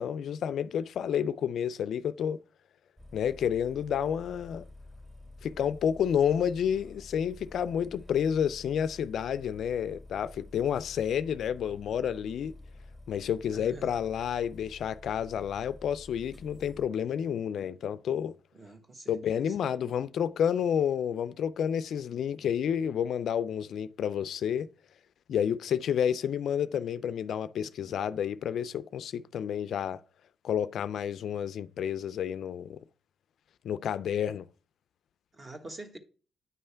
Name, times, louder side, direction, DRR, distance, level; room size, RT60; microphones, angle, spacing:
voice 1, 0.0-2.4 3.1-4.6 5.4-12.5 13.1-18.3 19.1-24.7 25.3-30.0 30.4-32.8 33.6-34.5, left 8 dB, 65° left, 0.3 m, -30 dB
sound 1, 3.0-16.9, left 2 dB, 10° right, 2.0 m, -50 dB
voice 2, 13.5-14.0 18.5-19.5 35.3-36.0, right 2 dB, 30° right, 1.2 m, -46 dB
9.3 x 3.2 x 5.5 m
cardioid pair, 90°, 0 cm